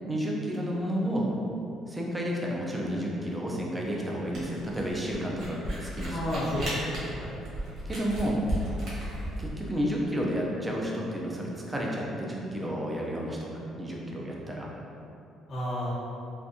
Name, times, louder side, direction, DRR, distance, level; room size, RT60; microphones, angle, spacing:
voice 1, 0.1-1.3 1.9-6.5 7.9-8.4 9.4-14.7, equal, 10° right, -3 dB, 0.4 m, -31 dB
Camera, 4.3-9.5, right 1 dB, 60° right, 1.1 m, -35 dB
voice 2, 6.1-7.4 15.5-15.9, left 1 dB, 40° left, -11 dB, 0.8 m, -32 dB
3.5 x 2.5 x 2.6 m, 2.7 s
cardioid pair, 155°, 0 cm